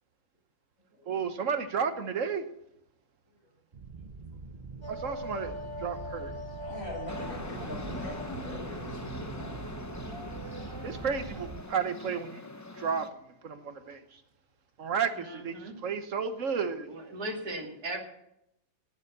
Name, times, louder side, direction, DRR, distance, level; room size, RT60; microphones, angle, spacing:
voice 1, 1.1-2.4 4.9-6.3 10.8-12.4 12.8-14.2 14.8-16.9, right 6 dB, 55° right, 9 dB, 1.4 m, -32 dB
sound 1, 3.7-11.6, right 4 dB, 35° right, 0.7 m, -44 dB
sound 2, 4.8-11.5, left 1 dB, 20° right, 1.4 m, -43 dB
voice 2, 6.6-9.8, left 1 dB, 65° left, -5 dB, 5.9 m, -42 dB
sound 3, 7.1-13.1, left 2 dB, 20° left, 0.4 m, -42 dB
voice 3, 15.1-15.7 16.9-18.0, right 1 dB, 75° right, 1 dB, 3.0 m, -38 dB
18.0 x 7.3 x 6.7 m, 0.80 s
omnidirectional pair, 1.7 m